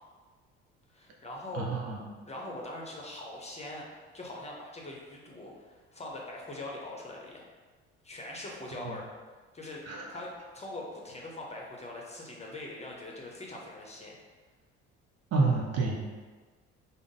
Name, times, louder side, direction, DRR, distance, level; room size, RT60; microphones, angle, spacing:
voice 1, 0.9-1.7 2.2-3.9 4.1-7.5 8.0-9.0 9.5-9.8 10.1-14.2, left 2 dB, 20° left, -2 dB, 0.8 m, -42 dB
voice 2, 1.5-2.0 8.9-9.0 9.9-10.0 15.3-16.0, right 3 dB, 45° right, 0 dB, 0.7 m, -28 dB
3.6 x 2.1 x 3.7 m, 1.4 s
hypercardioid pair, 60°, 35 cm